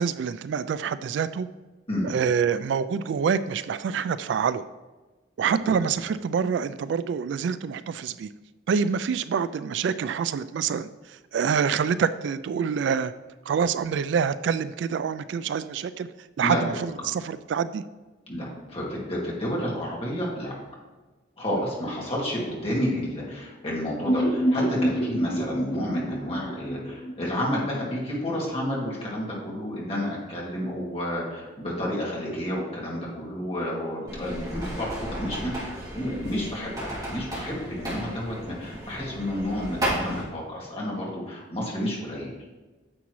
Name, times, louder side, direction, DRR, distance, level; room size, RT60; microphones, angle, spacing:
voice 1, 0.0-1.5 2.0-4.6 5.4-8.3 8.7-13.1 13.5-16.1 16.4-17.8, right 6 dB, 70° right, 14 dB, 0.3 m, -26 dB
voice 2, 18.3-20.5 21.4-42.3, left 1 dB, 30° left, -5 dB, 2.3 m, -30 dB
sound 1, 24.1-27.9 28.2-28.3 28.6-28.7, equal, 65° left, 1.8 m, -27 dB
sound 2, 34.1-40.2, right 1 dB, 20° right, 2.9 m, -34 dB
9.8 x 7.1 x 3.1 m, 1.2 s
head